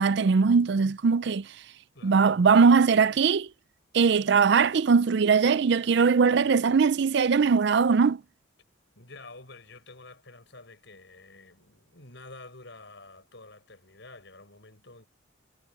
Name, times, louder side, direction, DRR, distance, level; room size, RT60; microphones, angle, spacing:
voice 1, 0.0-1.4 2.0-3.5 3.9-8.2, right 5 dB, 55° right, 0.4 m, -21 dB
voice 2, 1.9-2.3 9.0-15.1, left 2 dB, 60° left, 7.5 m, -49 dB
head